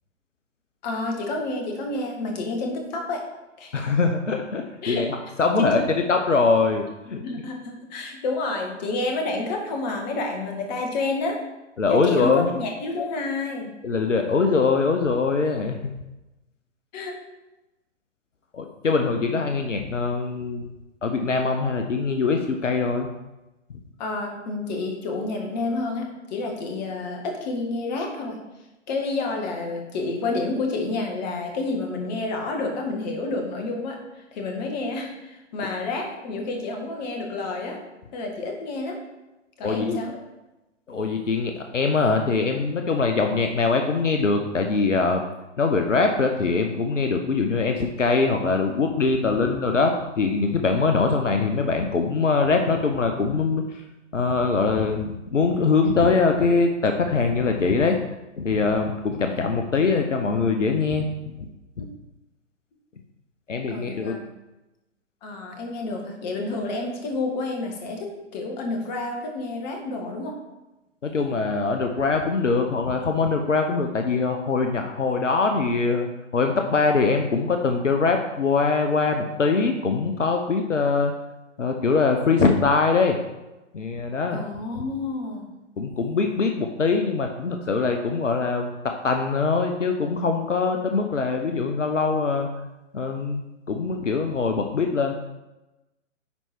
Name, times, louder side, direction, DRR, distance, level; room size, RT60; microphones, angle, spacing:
voice 1, 0.8-3.3 3.6-3.9 4.8-5.1 5.6-5.9 7.1-11.4 11.9-13.7 16.9-17.2 24.0-28.4 28.9-37.8 38.1-39.0 39.6-40.2 61.8-61.9 63.7-64.2 65.2-70.4 84.3-85.5, left 3 dB, 35° left, 2 dB, 1.8 m, -29 dB
voice 2, 3.7-7.2 11.8-12.5 13.0-13.1 13.8-15.9 18.5-20.7 21.0-23.1 39.6-40.0 40.9-45.2 45.6-53.8 54.1-58.0 58.4-61.0 61.4-61.5 61.8-61.9 63.5-64.1 71.0-81.1 81.6-83.2 83.7-84.4 85.8-92.5 92.9-93.4 93.7-95.1, left 4 dB, 75° left, 4 dB, 0.9 m, -23 dB
9.9 x 4.5 x 4.5 m, 1.0 s
figure-of-eight pair, 120°, 38 cm